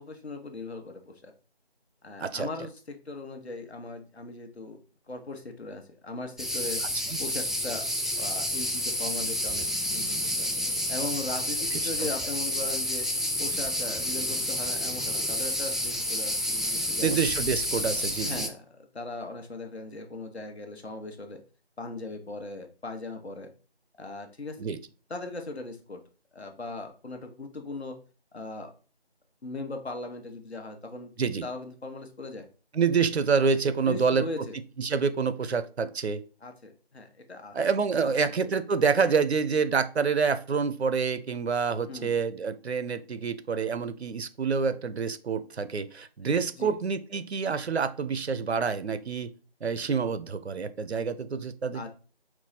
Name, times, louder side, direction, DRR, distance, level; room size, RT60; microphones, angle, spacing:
voice 1, 0.0-1.3 2.0-4.8 5.1-6.8 7.2-7.8 8.2-10.5 10.9-13.1 13.4-17.2 17.8-21.4 21.8-23.5 24.0-24.6 25.1-26.0 26.3-28.0 28.3-28.7 29.4-31.1 31.4-32.5 33.8-34.6 36.4-37.5 38.0-38.5 41.9-42.2 46.6-46.8 51.7-51.9, left 3 dB, 85° left, 4 dB, 1.0 m, -39 dB
sound 1, 6.4-18.5, equal, ahead, 0.3 m, -29 dB
voice 2, 11.7-12.1 17.0-18.5 24.6-24.8 31.2-31.5 32.7-34.2 34.8-36.2 37.5-49.3 49.6-51.9, right 5 dB, 85° right, 13 dB, 0.6 m, -27 dB
4.6 x 2.1 x 4.0 m, 0.36 s
figure-of-eight pair, 180°, 32 cm